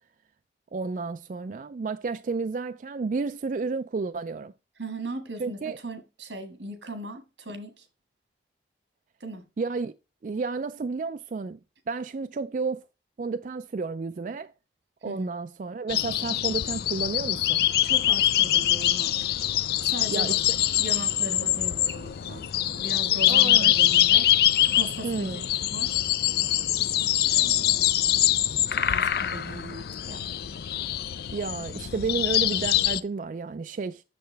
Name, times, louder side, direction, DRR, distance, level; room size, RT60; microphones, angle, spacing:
voice 1, 0.7-4.5 5.4-5.8 9.6-9.9 10.2-11.6 11.9-12.8 13.2-14.5 15.0-17.7 20.1-20.6 23.3-23.7 25.0-25.5 31.3-34.0, right 4 dB, 45° right, 0.3 m, -31 dB
voice 2, 4.8-7.9 9.2-9.4 15.0-15.3 17.8-19.1 19.9-20.4 20.8-24.3 24.6-25.3 25.7-26.0 27.3-27.9 28.7-30.3, right 1 dB, 90° right, 1.7 m, -38 dB
sound 1, 15.9-33.0, left 12 dB, 60° left, 0.4 m, -24 dB
6.8 x 6.5 x 3.3 m
head